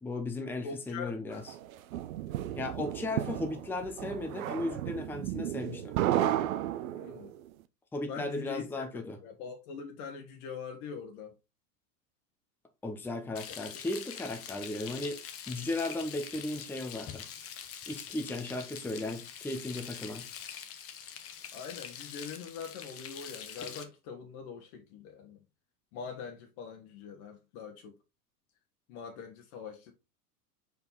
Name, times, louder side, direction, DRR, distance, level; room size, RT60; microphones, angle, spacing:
voice 1, 0.0-1.4 2.6-5.9 7.9-9.2 12.8-15.2 15.5-17.2 17.9-20.2, left 2 dB, 5° left, 0.8 m, -36 dB
voice 2, 0.6-1.4 6.9-7.3 8.1-11.3 13.7-13.8 21.5-25.4 25.9-28.0 28.9-29.9, left 6 dB, 45° left, 1.4 m, -43 dB
sound 1, 1.5-7.3, right 12 dB, 60° right, 0.8 m, -33 dB
Frying (food), 13.4-23.8, left 8 dB, 30° left, 1.1 m, -44 dB
5.3 x 4.8 x 4.0 m
figure-of-eight pair, 90°, 47 cm